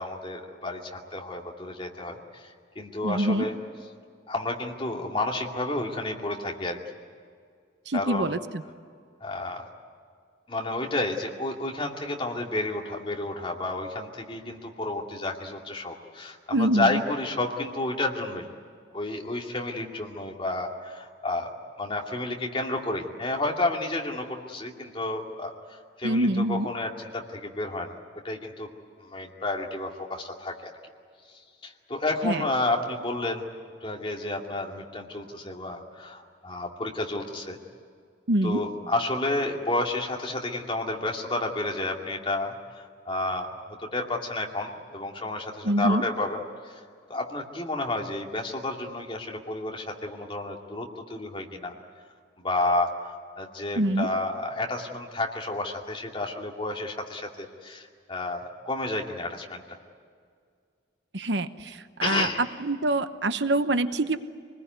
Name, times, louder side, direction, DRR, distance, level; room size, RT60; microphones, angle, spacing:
voice 1, 0.0-3.5 4.3-6.8 7.9-8.4 9.2-9.7 10.5-18.5 18.9-21.5 21.8-25.5 26.0-27.9 28.2-28.7 29.0-30.7 31.6-33.4 33.8-37.6 38.4-46.4 46.6-46.8 47.1-51.7 52.4-59.8 62.0-62.4, left 2 dB, 30° left, 0 dB, 2.5 m, -31 dB
voice 2, 3.0-3.5 7.9-8.6 16.5-17.0 26.0-26.7 32.2-32.4 38.3-38.6 45.6-46.0 53.8-54.1 61.1-62.3 62.6-64.2, right 1 dB, 70° right, 10 dB, 1.0 m, -25 dB
25.5 x 20.5 x 9.5 m, 2.1 s
head